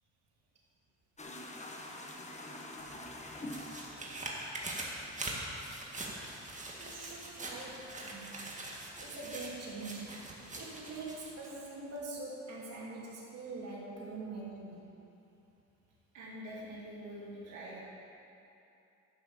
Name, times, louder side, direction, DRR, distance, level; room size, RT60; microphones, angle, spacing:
sound 1, 1.2-9.7 10.0-11.4, left 1 dB, 25° left, 1.4 m, -48 dB
sound 2, 2.8-11.5 12.0-12.1, right 1 dB, 25° right, 1.9 m, -43 dB
voice 1, 6.8-10.2 10.5-14.9, right 3 dB, 55° right, -5 dB, 2.8 m, -44 dB
voice 2, 16.1-17.8, equal, 85° right, -7 dB, 2.5 m, -45 dB
11.5 x 6.3 x 7.5 m, 2.9 s
cardioid pair, 90°, 30 cm